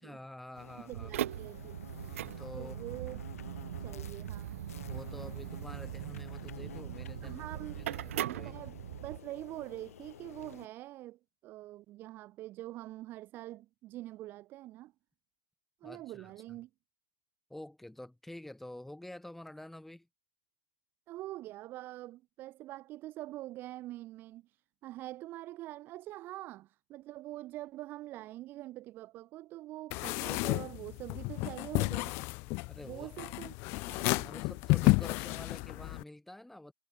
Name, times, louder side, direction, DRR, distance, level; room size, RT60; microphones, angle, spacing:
voice 1, 0.0-1.1 2.4-3.0 4.8-7.4 7.8-8.6 15.8-16.6 17.5-20.1 32.7-33.1 34.1-36.7, left 1 dB, ahead, 2.5 m, -48 dB
sound 1, 0.5-10.7, left 10 dB, 55° left, 3.7 m, -51 dB
voice 2, 0.8-1.9 2.5-3.2 3.8-4.6 7.2-7.9 8.2-14.9 15.8-16.7 21.1-32.2 32.8-33.5 33.8-34.3, right 16 dB, 20° right, 0.6 m, -45 dB
sound 2, 0.9-9.2, right 12 dB, 50° right, 0.9 m, -40 dB
sound 3, 29.9-36.0, left 27 dB, 25° left, 0.3 m, -31 dB
figure-of-eight pair, 125°, 9 cm